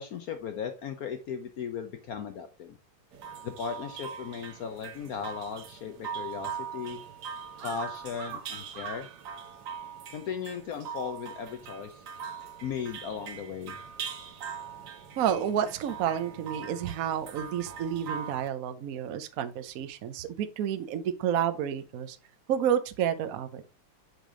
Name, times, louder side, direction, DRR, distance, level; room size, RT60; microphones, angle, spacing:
voice 1, 0.0-2.8 3.4-7.0 7.6-9.1 10.1-12.0 12.6-13.8, left 7 dB, 75° left, 0.8 m, -37 dB
sound 1, 3.1-18.5, right 7 dB, 60° right, 1.3 m, -41 dB
voice 2, 15.2-22.2 22.5-23.6, right 9 dB, 80° right, 0.7 m, -30 dB
6.4 x 5.0 x 3.7 m
omnidirectional pair, 2.3 m